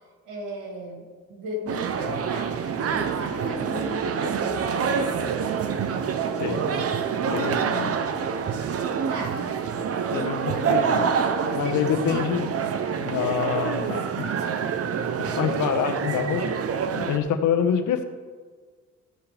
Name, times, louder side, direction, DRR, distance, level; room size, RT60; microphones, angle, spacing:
voice 1, 0.2-2.6 2.9-5.3 9.0-9.4 10.1-12.6, equal, 90° right, -2 dB, 2.9 m, -35 dB
sound 1, 1.7-17.2, right 6 dB, 50° right, 0.8 m, -27 dB
voice 2, 6.4-6.8 7.2-8.0 10.1-11.1 11.5-12.5 13.0-14.3 15.2-16.4 16.9-18.0, left 8 dB, 80° left, 6 dB, 1.1 m, -26 dB
15.0 x 7.0 x 3.4 m, 1.5 s
cardioid pair, 90°, 30 cm